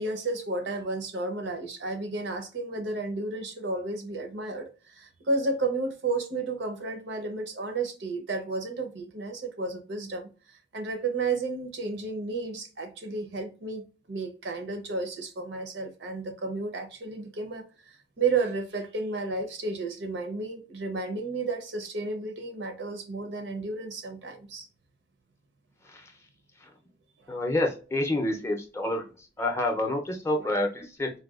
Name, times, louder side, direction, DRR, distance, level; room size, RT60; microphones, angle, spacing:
voice 1, 0.0-24.7 30.4-30.6, right 3 dB, 75° right, 0.7 m, -32 dB
voice 2, 27.3-29.0 29.4-31.1, left 1 dB, 15° left, 0.5 m, -28 dB
4.0 x 2.2 x 2.3 m
head